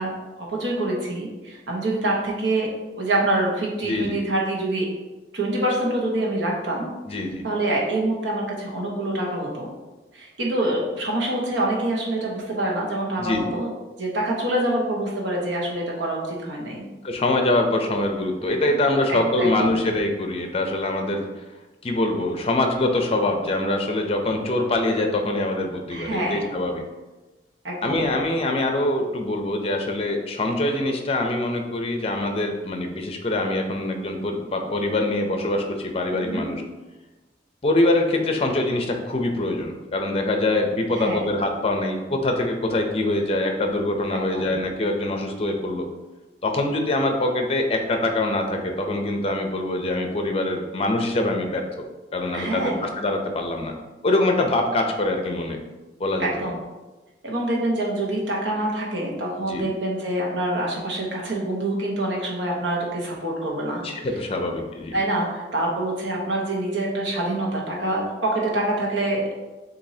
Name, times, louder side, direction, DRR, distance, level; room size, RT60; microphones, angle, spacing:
voice 1, 0.0-2.7 3.0-4.9 5.3-6.9 7.4-9.7 10.1-13.7 14.0-16.9 19.1-19.7 25.9-26.5 27.6-28.1 36.1-36.5 40.9-41.3 44.1-44.5 52.3-52.8 56.2-56.6 57.2-63.8 64.9-69.3, right 1 dB, 85° right, -2 dB, 1.1 m, -26 dB
voice 2, 3.8-4.2 7.1-7.4 13.2-13.6 17.0-21.4 21.8-26.8 27.8-36.6 37.6-45.9 46.4-51.9 52.1-53.7 54.0-55.6 56.0-56.3 59.4-59.7 63.8-65.0, left 2 dB, 35° left, 4 dB, 0.5 m, -24 dB
7.2 x 2.7 x 2.7 m, 1.2 s
head